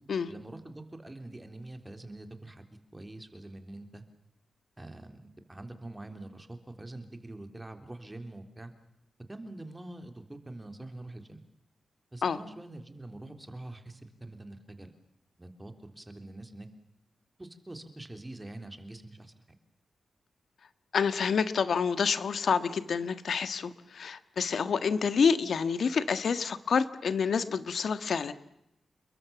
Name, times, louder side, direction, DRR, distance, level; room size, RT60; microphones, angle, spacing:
voice 1, 0.3-2.6 2.9-4.0 4.8-8.7 9.3-11.4 12.1-14.9 15.4-16.7 17.4-19.3, right 2 dB, 15° right, 7 dB, 3.5 m, -45 dB
voice 2, 20.9-28.3, left 6 dB, 70° left, 12 dB, 1.6 m, -28 dB
29.5 x 22.5 x 7.1 m, 0.82 s
wide cardioid pair, 115°, 0 cm